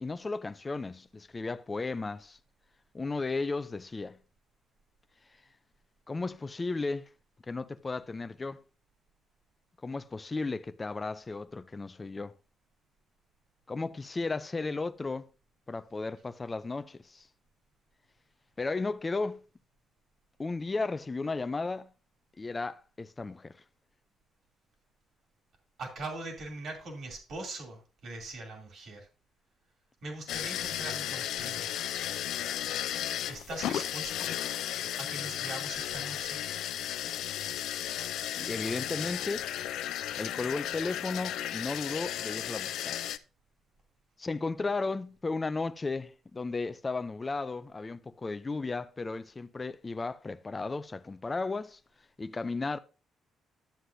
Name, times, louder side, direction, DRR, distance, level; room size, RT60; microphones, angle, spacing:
voice 1, 0.0-2.4 2.9-4.2 6.1-7.1 7.5-8.6 9.8-12.3 13.7-15.3 15.7-17.3 18.6-19.4 20.4-21.9 22.4-23.6 38.4-39.5 40.2-43.0 44.2-51.8 52.2-52.8, left 3 dB, 25° left, 0.4 m, -34 dB
voice 2, 25.8-29.1 30.0-31.7 33.3-34.4 35.0-36.4, right 2 dB, 60° right, 2.8 m, -41 dB
sound 1, 30.3-43.2, left 11 dB, 85° left, 0.4 m, -34 dB
11.5 x 7.7 x 2.6 m
cardioid pair, 90°, 0 cm